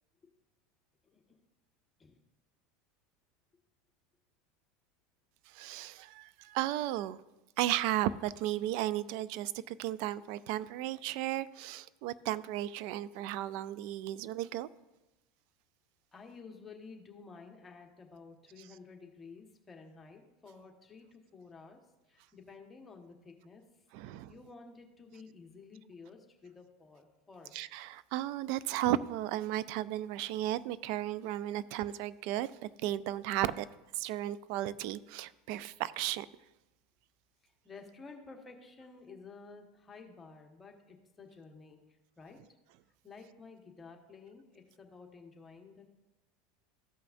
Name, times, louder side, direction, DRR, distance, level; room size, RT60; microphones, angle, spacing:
voice 1, 5.5-7.2 7.6-14.7 23.9-24.3 27.5-32.5 32.8-33.7 33.9-36.3, right 13 dB, 65° right, 0.4 m, -34 dB
voice 2, 16.1-21.8 22.1-23.6 24.0-27.5 37.4-41.8 42.2-42.4 43.0-45.9, left 4 dB, 20° left, 1.4 m, -52 dB
14.5 x 5.6 x 2.6 m
supercardioid pair, 110°, 0 cm